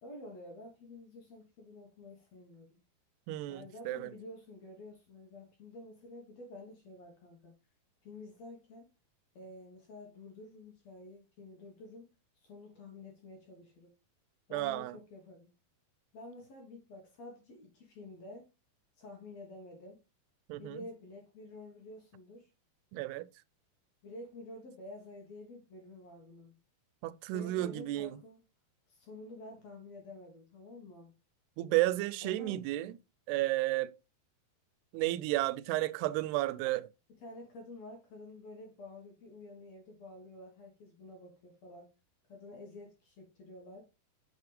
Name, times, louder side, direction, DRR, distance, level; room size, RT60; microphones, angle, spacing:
voice 1, 0.0-2.8 3.5-7.6 8.0-8.9 9.3-13.9 14.5-15.5 16.1-18.5 19.0-20.0 20.6-22.5 24.0-26.6 27.3-28.4 28.9-31.2 32.2-32.6 37.2-41.9 42.3-43.9, left 2 dB, 60° left, 2.0 m, -50 dB
voice 2, 3.3-4.1 14.5-15.0 20.5-20.9 22.9-23.3 27.0-28.2 31.6-33.0 33.3-33.9 34.9-36.9, right 17 dB, 90° right, 2.6 m, -32 dB
8.2 x 4.8 x 3.3 m
omnidirectional pair, 4.6 m